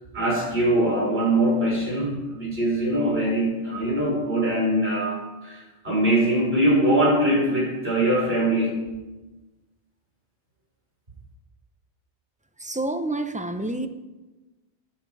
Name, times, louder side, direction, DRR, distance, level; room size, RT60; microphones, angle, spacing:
voice 1, 0.1-8.8, right 1 dB, 60° right, -4 dB, 6.2 m, -22 dB
voice 2, 12.6-13.9, right 2 dB, 10° right, 7 dB, 0.7 m, -28 dB
16.5 x 10.5 x 4.9 m, 1.1 s
omnidirectional pair, 1.2 m